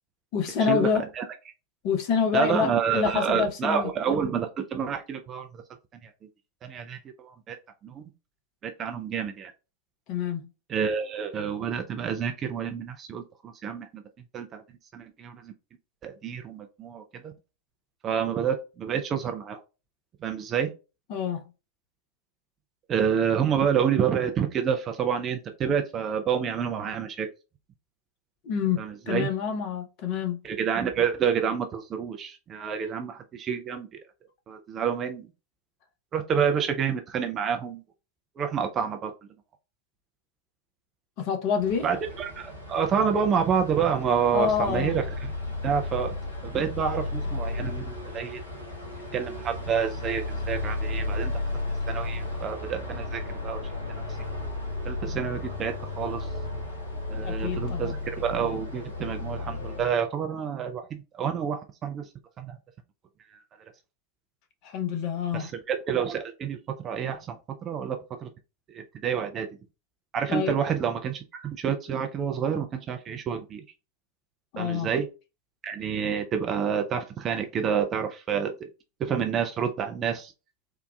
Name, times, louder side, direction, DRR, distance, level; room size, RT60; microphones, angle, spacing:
voice 1, 0.3-1.1 1.8-3.9 10.1-10.5 21.1-21.4 28.4-30.4 41.2-41.8 44.3-44.9 57.2-58.0 64.6-65.5 70.3-70.6 74.5-74.9, left 7 dB, 40° left, 0.8 m, -27 dB
voice 2, 2.3-5.6 6.0-6.1 6.6-7.6 7.8-8.0 8.6-9.5 10.7-14.0 14.3-14.6 14.9-15.5 16.0-17.3 18.0-19.6 20.2-20.7 22.9-27.3 28.8-29.3 30.4-34.0 34.5-35.3 36.1-37.8 38.4-39.1 41.8-45.3 45.6-46.2 46.4-48.4 49.1-51.3 51.9-53.6 54.8-56.3 57.1-62.1 62.4-62.6 63.3-63.4 65.3-66.6 66.8-67.4 67.6-68.3 68.7-69.5 70.1-73.6 74.6-75.1 75.6-78.7 79.0-80.3, right 7 dB, 25° right, 0.4 m, -28 dB
sound 1, 41.6-59.9, left 2 dB, 80° left, 1.3 m, -34 dB
3.8 x 2.2 x 2.2 m
figure-of-eight pair, 90°, 0 cm